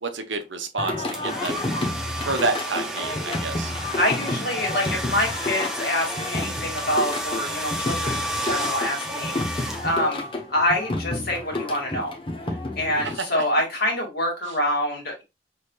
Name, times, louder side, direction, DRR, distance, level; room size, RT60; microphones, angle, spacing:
voice 1, 0.0-1.0 1.2-1.6 2.2-3.7 13.0-13.4, right 3 dB, 80° right, 1.0 m, -29 dB
Singing, 0.8-13.2, left 2 dB, 30° left, 0.9 m, -30 dB
sound 1, 1.1-10.3, right 1 dB, 5° right, 0.8 m, -32 dB
voice 2, 3.9-12.1 12.8-15.2, left 1 dB, 55° left, 2.1 m, -26 dB
6.5 x 3.3 x 2.3 m
head